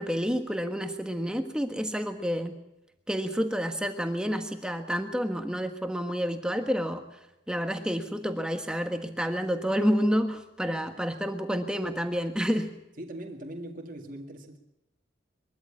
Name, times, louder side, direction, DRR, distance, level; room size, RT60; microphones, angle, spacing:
voice 1, 0.0-2.6 3.1-7.0 7.5-12.7, equal, 5° right, 1.4 m, -29 dB
voice 2, 13.0-14.6, right 1 dB, 45° right, 2.0 m, -41 dB
22.5 x 13.5 x 8.6 m
head